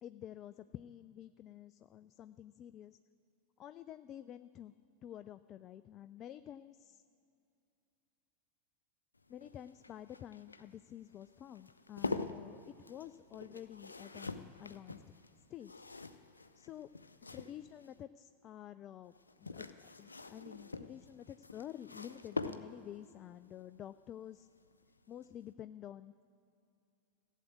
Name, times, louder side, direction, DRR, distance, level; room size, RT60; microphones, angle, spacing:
voice 1, 0.0-3.0 3.6-4.7 5.0-7.0 9.3-15.0 15.5-15.9 16.6-16.9 17.3-24.5 25.1-26.2, left 11 dB, 30° left, 13 dB, 0.3 m, -50 dB
sound 1, 9.2-18.0 19.1-23.0 24.7-25.0 25.2-25.3, left 3 dB, 80° left, 0.6 m, -45 dB
15.0 x 8.3 x 8.6 m, 2.6 s
figure-of-eight pair, 90°, 0 cm